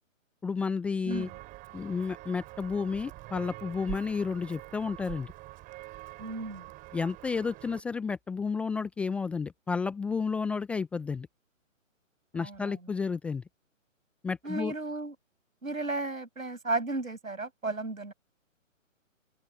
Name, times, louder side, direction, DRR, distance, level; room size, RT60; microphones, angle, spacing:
voice 1, 0.4-1.3 1.7-5.3 6.9-11.3 12.3-13.4 14.2-14.7, left 5 dB, 5° left, 0.7 m, -31 dB
Walk footsteps, 1.1-7.8, right 19 dB, 20° right, 5.4 m, -45 dB
voice 2, 6.2-6.7 12.3-12.7 14.4-15.1 15.6-18.1, right 2 dB, 85° right, 6.5 m, -34 dB
open air
figure-of-eight pair, 135°, 40 cm